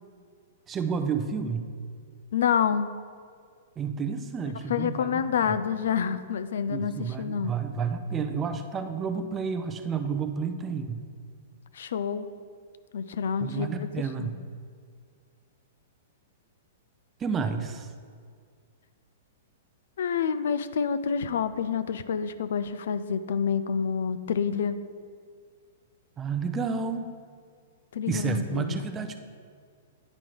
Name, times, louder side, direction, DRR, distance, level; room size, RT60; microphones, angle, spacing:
voice 1, 0.7-1.7 3.8-5.6 6.7-11.0 13.4-14.4 17.2-17.9 26.2-27.1 28.1-29.1, right 5 dB, 20° right, 8 dB, 0.6 m, -30 dB
voice 2, 2.3-2.9 4.7-7.5 11.7-12.3 12.9-14.3 20.0-24.8 27.9-28.8, left 7 dB, 70° left, 13 dB, 0.3 m, -28 dB
9.8 x 3.7 x 4.6 m, 2.1 s
hypercardioid pair, 115°, 0 cm